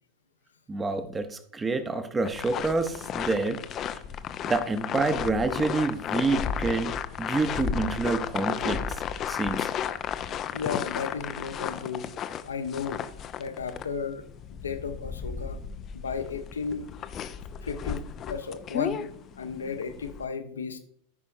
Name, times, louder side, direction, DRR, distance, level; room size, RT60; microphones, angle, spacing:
voice 1, 0.7-3.6 4.4-6.9 7.2-9.7, right 3 dB, 15° right, 10 dB, 0.8 m, -28 dB
sound 1, 2.2-20.2, left 8 dB, 30° left, 0.5 m, -34 dB
voice 2, 10.5-12.1 12.5-14.2 14.5-15.6 15.9-16.9 17.6-19.1 19.4-20.8, left 5 dB, 70° left, 9 dB, 0.8 m, -34 dB
13.5 x 5.4 x 2.7 m, 0.65 s
figure-of-eight pair, 90°, 0 cm